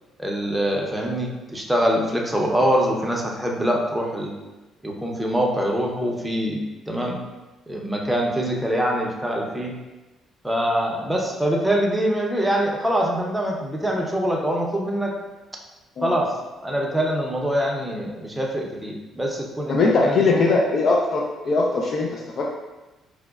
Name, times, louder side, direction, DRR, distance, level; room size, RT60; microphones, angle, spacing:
voice 1, 0.2-4.3 4.8-7.2 7.7-9.7 10.4-15.1 16.0-16.3 16.6-20.5, equal, 5° right, -1 dB, 0.6 m, -24 dB
voice 2, 19.7-22.5, left 3 dB, 55° left, -1 dB, 0.4 m, -21 dB
4.7 x 2.1 x 2.3 m, 1.1 s
supercardioid pair, 75°, 0 cm